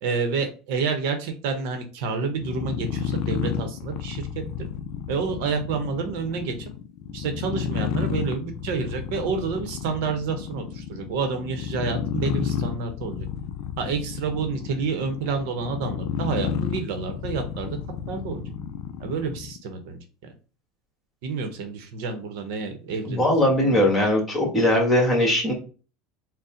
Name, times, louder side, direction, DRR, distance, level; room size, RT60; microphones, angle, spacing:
voice 1, 0.0-4.7 5.1-6.5 7.1-13.3 13.8-17.8 18.1-18.4 19.0-20.0 21.2-23.3 23.7-23.8, right 5 dB, 70° right, 6 dB, 0.8 m, -29 dB
sound 1, 2.3-19.6, left 8 dB, 60° left, 0.4 m, -31 dB
voice 2, 23.0-25.5, left 1 dB, 10° left, 0 dB, 1.5 m, -20 dB
4.1 x 2.1 x 3.7 m, 0.36 s
supercardioid pair, 130°, 0 cm